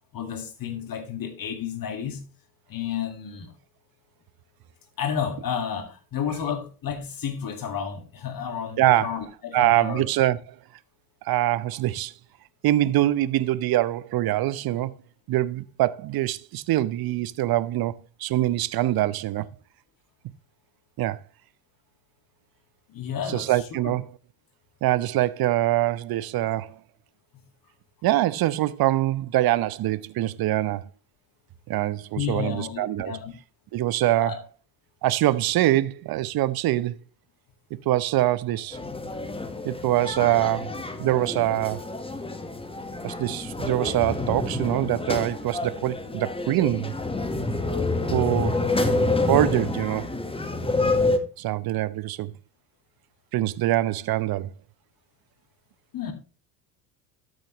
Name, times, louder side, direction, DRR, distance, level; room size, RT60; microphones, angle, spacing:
voice 1, 0.1-2.2 2.7-3.5 5.0-10.1 22.9-23.9 32.2-33.3 34.2-34.4 39.5-39.6 55.9-56.1, left 8 dB, 45° left, 2.1 m, -31 dB
voice 2, 8.8-9.1 9.5-10.4 11.2-12.1 12.6-14.9 15.3-19.5 21.0-21.2 23.3-24.1 24.8-26.8 28.0-30.9 31.7-33.1 33.7-34.3 35.0-37.0 37.9-38.8 39.6-41.8 43.0-46.9 48.1-48.6 49.3-50.1 51.4-52.3 53.3-54.5, right 15 dB, 50° right, 0.8 m, -24 dB
sound 1, 38.7-51.2, left 2 dB, 10° left, 1.4 m, -28 dB
13.0 x 6.4 x 3.1 m
hypercardioid pair, 65°, 47 cm